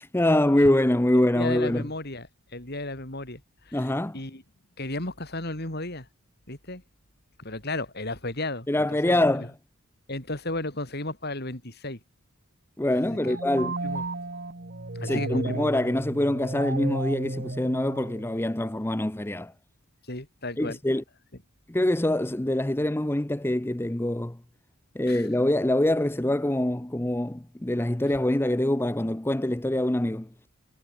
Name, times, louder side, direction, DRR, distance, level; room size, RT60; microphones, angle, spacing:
voice 1, 0.0-1.9 3.7-4.2 8.7-9.5 12.8-13.7 15.0-19.5 20.6-21.0 21.7-24.4 24.9-30.3, left 1 dB, 10° left, 0.6 m, -25 dB
voice 2, 1.3-4.4 4.8-6.1 6.5-6.8 7.4-9.5 10.1-12.0 12.9-13.4 13.8-14.0 14.9-15.7 20.1-20.8 25.1-25.3, left 2 dB, 45° left, 4.6 m, -34 dB
sound 1, 13.1-18.6, right 2 dB, 45° right, 1.5 m, -33 dB
head